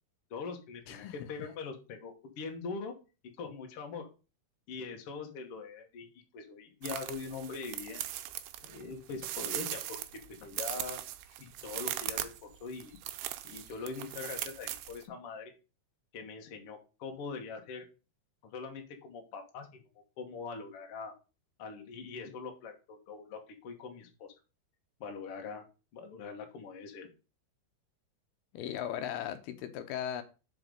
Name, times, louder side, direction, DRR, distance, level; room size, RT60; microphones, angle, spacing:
voice 1, 0.3-2.9 3.4-4.1 4.7-8.1 8.6-10.0 10.3-11.0 11.4-12.9 13.4-15.5 16.1-17.8 18.4-19.8 20.2-21.1 21.6-24.3 25.0-25.6 25.9-27.1, left 4 dB, 55° left, 1.6 m, -42 dB
sound 1, 6.8-15.0, right 13 dB, 85° right, 2.7 m, -39 dB
voice 2, 28.5-30.2, left 10 dB, 80° left, 2.6 m, -37 dB
5.3 x 5.0 x 6.3 m
omnidirectional pair, 4.6 m